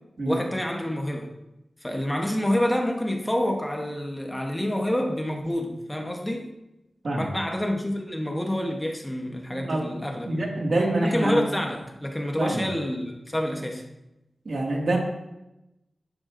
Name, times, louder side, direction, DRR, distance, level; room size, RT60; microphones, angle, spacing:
voice 1, 0.2-1.3 1.8-6.5 7.2-10.5 11.0-13.9, left 1 dB, 10° left, 2 dB, 1.0 m, -28 dB
voice 2, 9.5-9.9 10.3-11.4 12.4-12.7 14.5-15.0, right 1 dB, 60° right, 0 dB, 2.0 m, -26 dB
11.5 x 11.5 x 2.6 m, 0.93 s
wide cardioid pair, 115°, 0 cm